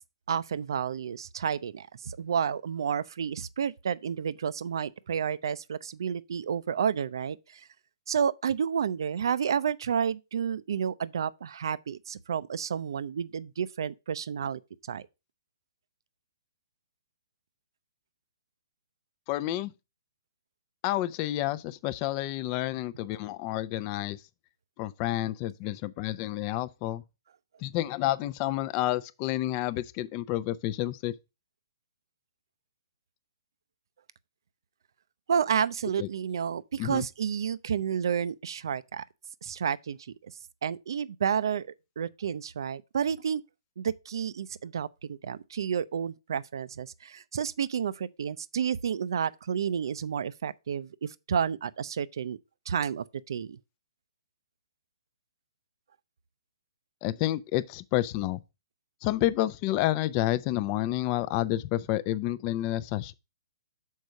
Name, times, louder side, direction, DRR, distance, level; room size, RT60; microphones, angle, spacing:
voice 1, 0.3-7.7 8.1-14.6 14.9-15.0 35.3-39.0 39.4-40.0 40.2-40.3 40.6-41.7 42.0-43.4 43.8-52.4 52.7-53.6, right 7 dB, 65° right, 0.5 m, -30 dB
voice 2, 19.3-19.7 20.8-24.2 24.8-27.0 27.6-31.1 36.0-36.1 36.8-37.0 57.0-58.4 59.0-63.1, left 15 dB, 30° left, 0.5 m, -29 dB
6.5 x 4.6 x 5.2 m
hypercardioid pair, 145°, 2 cm